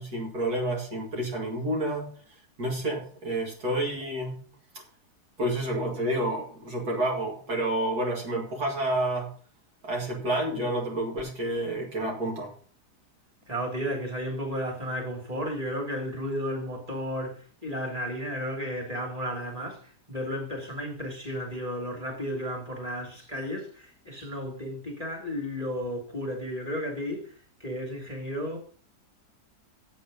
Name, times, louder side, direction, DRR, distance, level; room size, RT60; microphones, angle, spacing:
voice 1, 0.0-2.1 2.6-4.3 4.7-4.8 5.4-9.3 9.8-12.5, right 1 dB, 65° right, 2.7 m, -29 dB
voice 2, 13.5-28.6, equal, 20° right, 3.1 m, -33 dB
8.3 x 8.2 x 5.3 m
omnidirectional pair, 1.8 m